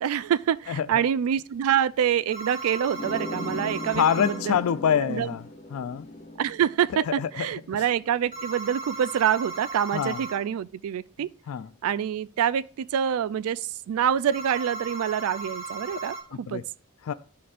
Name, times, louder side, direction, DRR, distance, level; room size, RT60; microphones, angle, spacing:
voice 1, 0.0-4.6 5.1-5.3 6.4-11.3 11.8-16.6, right 9 dB, 90° right, 0.3 m, -26 dB
sound 1, 2.3-4.4 8.3-10.4 14.3-16.2, right 3 dB, 35° right, 1.6 m, -36 dB
sound 2, 2.9-8.2, left 1 dB, 35° left, 0.8 m, -39 dB
voice 2, 3.9-5.5 5.7-6.1 7.1-7.5 7.7-7.8 9.9-10.2 11.5-11.7 15.9-16.0 16.3-16.6 17.0-17.1, left 8 dB, 85° left, 0.3 m, -26 dB
12.5 x 4.2 x 2.5 m
head